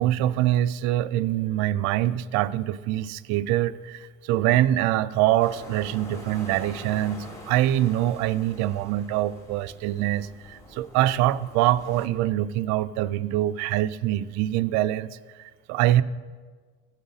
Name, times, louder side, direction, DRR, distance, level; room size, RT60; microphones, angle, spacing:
voice 1, 0.0-16.0, right 13 dB, 60° right, 14 dB, 0.4 m, -24 dB
sound 1, 5.4-12.1, left 1 dB, 10° left, 1.2 m, -45 dB
16.0 x 5.6 x 3.9 m, 1.5 s
cardioid pair, 140°, 31 cm